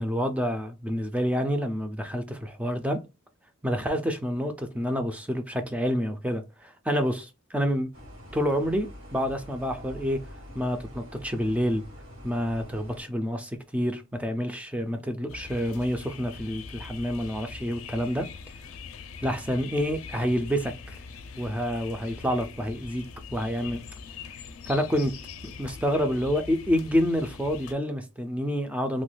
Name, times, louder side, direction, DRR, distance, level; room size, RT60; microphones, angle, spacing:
voice 1, 0.0-3.0 3.6-7.9 8.3-10.2 10.5-11.8 12.2-18.3 19.2-20.7 21.4-23.0 23.3-23.8 24.7-25.1 25.6-29.0, equal, 5° right, 0.3 m, -28 dB
sound 1, 7.9-13.0, equal, 85° right, 1.9 m, -45 dB
sound 2, 15.3-27.7, left 5 dB, 75° left, 0.5 m, -43 dB
3.0 x 2.2 x 3.2 m
head